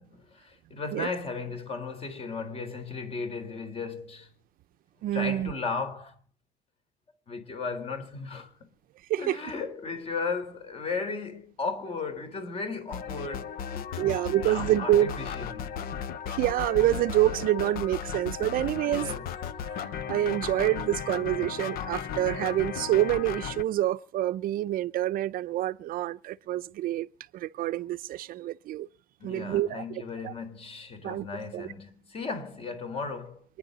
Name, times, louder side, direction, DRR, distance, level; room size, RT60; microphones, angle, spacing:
voice 1, 0.0-4.3 5.1-6.2 7.3-8.5 9.2-13.6 13.9-14.1 14.4-15.7 18.8-19.3 29.2-33.4, left 4 dB, 35° left, 4.2 m, -35 dB
voice 2, 5.0-5.5 9.1-9.4 14.0-15.1 16.3-19.1 19.7-27.1 27.3-28.9 29.2-29.8 30.2-30.3 31.0-31.3 31.5-31.7, right 13 dB, 60° right, 0.6 m, -27 dB
sound 1, 12.9-23.6, left 7 dB, 65° left, 1.1 m, -35 dB
27.0 x 10.5 x 4.1 m
cardioid pair, 140°, 17 cm